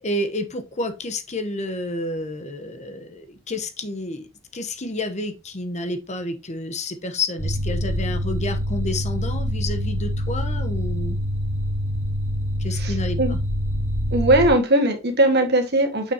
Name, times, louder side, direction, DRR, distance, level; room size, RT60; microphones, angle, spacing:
voice 1, 0.0-4.3 4.5-11.2 12.6-13.4, left 2 dB, 35° left, 1.0 m, -30 dB
sound 1, 7.4-14.5, equal, 10° right, 1.4 m, -25 dB
voice 2, 12.8-13.4 14.1-16.1, right 1 dB, 55° right, 1.7 m, -19 dB
6.8 x 6.0 x 2.9 m
head